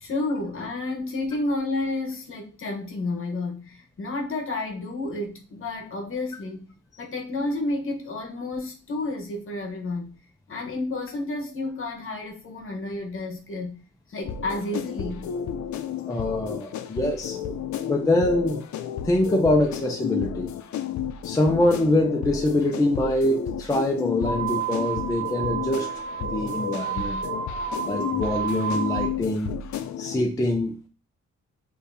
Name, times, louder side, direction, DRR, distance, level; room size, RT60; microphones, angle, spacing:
voice 1, 0.0-10.1 10.5-13.8 14.1-15.3, left 2 dB, 45° left, 1.0 m, -31 dB
sound 1, 14.2-30.2, left 8 dB, 70° left, 0.5 m, -32 dB
voice 2, 16.1-17.4 17.9-18.6 19.0-20.5 21.2-25.9 26.2-27.2 27.9-29.5 30.0-30.9, left 1 dB, 10° left, 0.4 m, -24 dB
sound 2, 24.2-29.1, right 7 dB, 50° right, 1.5 m, -31 dB
6.7 x 2.7 x 2.6 m
wide cardioid pair, 175°, 30 cm